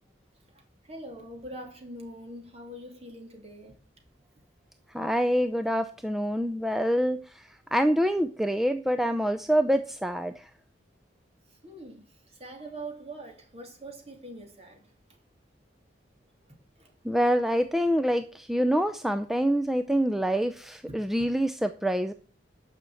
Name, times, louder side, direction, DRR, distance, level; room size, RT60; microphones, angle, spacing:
voice 1, 0.5-3.7 11.6-14.9 16.8-16.9 20.9-21.0, right 1 dB, 35° right, 2.7 m, -43 dB
voice 2, 4.9-10.5 17.0-22.1, equal, ahead, 0.5 m, -26 dB
9.8 x 5.8 x 7.7 m
head